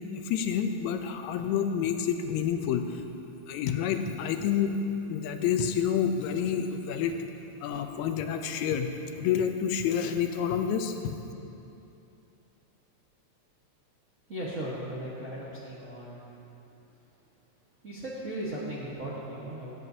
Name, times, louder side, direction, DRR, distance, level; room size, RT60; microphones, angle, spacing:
voice 1, 0.0-3.0 3.5-4.8 5.1-7.2 7.6-8.9 9.2-11.1, left 8 dB, 90° left, 7 dB, 2.0 m, -28 dB
voice 2, 14.3-16.2 17.8-19.7, right 1 dB, 50° right, -8 dB, 0.9 m, -37 dB
17.0 x 9.4 x 2.7 m, 2.9 s
omnidirectional pair, 3.3 m